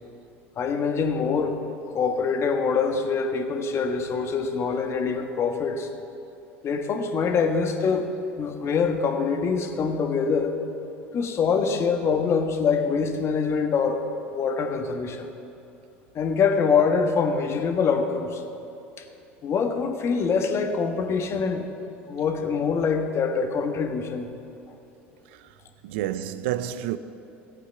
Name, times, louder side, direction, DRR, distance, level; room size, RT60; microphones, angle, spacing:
voice 1, 0.6-1.6 1.9-5.9 6.6-8.1 8.4-10.5 11.1-14.0 14.3-15.3 16.1-18.4 19.0-19.1 19.4-21.6 22.1-24.3, left 5 dB, 45° left, 1.4 m, -24 dB
voice 2, 25.8-27.0, right 12 dB, 70° right, 0.5 m, -29 dB
14.5 x 8.5 x 5.8 m
hypercardioid pair, 80°, 6 cm